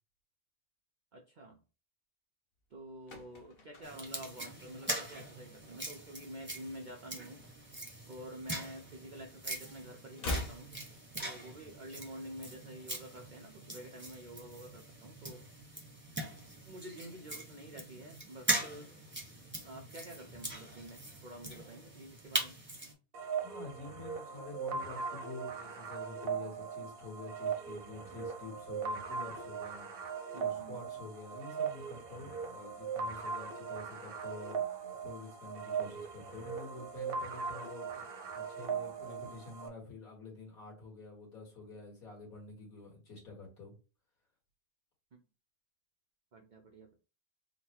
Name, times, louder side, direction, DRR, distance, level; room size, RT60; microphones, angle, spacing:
voice 1, 1.1-1.6 2.7-7.4 8.1-10.7 11.2-15.4 16.7-18.9 19.6-22.6 30.3-30.8 45.1-45.2 46.3-47.0, right 1 dB, 80° right, 2 dB, 0.4 m, -49 dB
sound 1, 2.7-5.4 5.6-5.9 6.2-7.7 8.0-9.3 9.6-11.7 11.9-12.0, left 1 dB, 45° left, 0.9 m, -44 dB
sound 2, 3.8-22.9, right 1 dB, 10° right, 0.7 m, -41 dB
sound 3, 23.1-39.7, right 6 dB, 55° right, 0.7 m, -39 dB
voice 2, 23.4-29.9 30.4-38.0 38.3-43.7, left 3 dB, 70° left, -3 dB, 2.2 m, -48 dB
4.0 x 2.1 x 4.3 m, 0.33 s
omnidirectional pair, 1.6 m